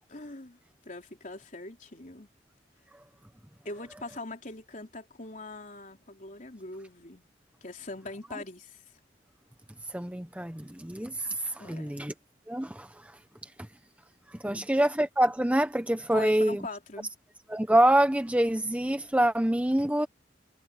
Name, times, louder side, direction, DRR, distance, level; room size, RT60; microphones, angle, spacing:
voice 1, 0.0-2.3 3.7-7.3 7.6-8.8 11.6-12.0 14.5-14.7 16.1-17.1, left 2 dB, 45° left, 3.7 m, -42 dB
voice 2, 9.9-12.1 12.5-13.2 14.4-16.6 17.5-20.1, right 1 dB, 5° right, 0.8 m, -26 dB
head